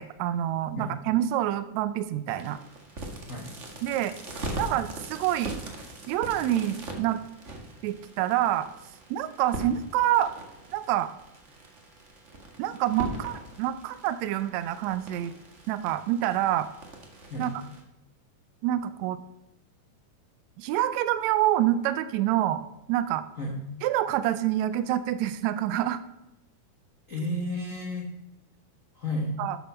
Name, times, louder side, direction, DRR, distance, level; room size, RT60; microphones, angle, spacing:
voice 1, 0.0-2.6 3.8-4.1 4.6-5.6 6.1-7.2 7.8-8.7 9.1-10.3 10.7-11.1 12.6-15.3 15.7-16.7 17.4-17.5 18.6-19.2 20.6-22.6 22.9-23.2 23.8-26.0 29.4-29.6, right 12 dB, 85° right, 12 dB, 1.6 m, -27 dB
sound 1, 2.3-17.8, right 1 dB, 35° right, 1.1 m, -41 dB
voice 2, 27.1-28.1 28.9-29.3, left 1 dB, 90° left, 0 dB, 0.7 m, -32 dB
12.5 x 7.2 x 5.6 m, 0.93 s
omnidirectional pair, 3.8 m